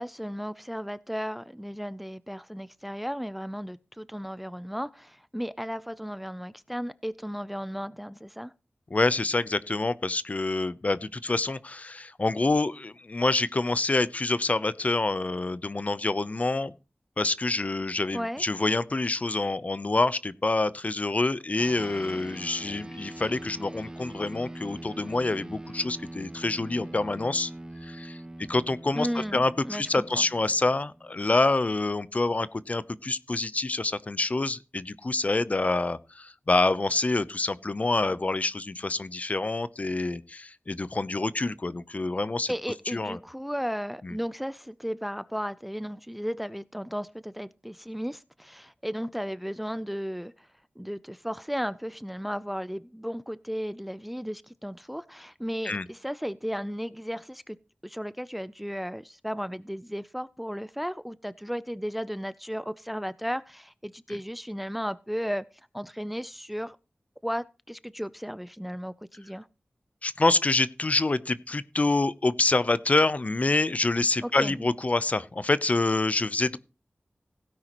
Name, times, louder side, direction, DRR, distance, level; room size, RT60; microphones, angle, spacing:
voice 1, 0.0-8.5 18.1-18.4 29.0-30.3 42.5-50.5 50.8-57.6 57.8-65.5 65.7-66.8 67.2-69.5 74.2-74.6, equal, 5° right, 0.5 m, -34 dB
voice 2, 8.9-16.7 17.2-27.5 27.8-28.2 28.5-29.1 29.3-42.5 42.9-43.2 44.0-44.1 55.6-55.8 70.0-76.6, left 2 dB, 40° left, 0.7 m, -27 dB
sound 1, 21.6-31.3, right 1 dB, 20° right, 1.0 m, -42 dB
16.5 x 9.4 x 3.0 m
wide cardioid pair, 85°, 4 cm